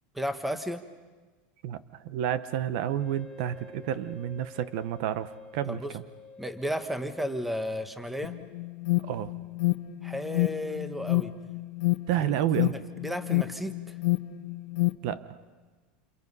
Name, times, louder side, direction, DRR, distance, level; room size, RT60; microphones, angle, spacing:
voice 1, 0.1-0.8 5.7-5.9 6.4-8.3 10.0-11.3 12.2-12.3 12.6-14.0, equal, ahead, 8 dB, 1.2 m, -33 dB
voice 2, 1.6-6.0 9.0-9.3 12.1-12.7 15.0-15.4, right 11 dB, 55° right, 14 dB, 0.9 m, -30 dB
Wind instrument woodwind instrument, 2.9-7.9, left 4 dB, 15° left, 3.0 m, -50 dB
Alarm, 8.2-14.9, left 21 dB, 80° left, 1.0 m, -28 dB
28.0 x 28.0 x 5.5 m, 1.3 s
supercardioid pair, 165°, 5 cm